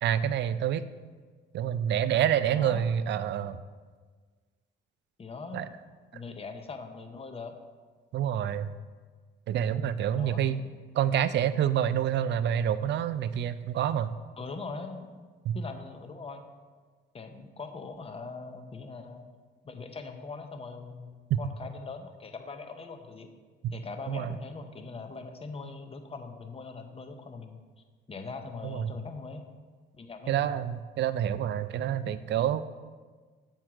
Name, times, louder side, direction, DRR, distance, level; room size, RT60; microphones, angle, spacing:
voice 1, 0.0-0.9 1.5-3.6 5.5-5.7 8.1-8.7 9.5-10.6 10.9-14.1 15.5-15.6 21.3-21.4 23.6-23.7 24.1-24.4 28.6-28.9 30.3-32.6, right 9 dB, 65° right, 14 dB, 0.4 m, -27 dB
voice 2, 2.5-2.9 5.2-5.7 6.1-7.5 10.1-10.7 14.4-15.1 15.5-16.4 17.1-19.2 19.6-23.3 23.7-27.6 28.1-29.4 29.9-30.3, left 4 dB, 30° left, 6 dB, 0.7 m, -41 dB
7.8 x 4.4 x 4.8 m, 1.5 s
cardioid pair, 90°, 20 cm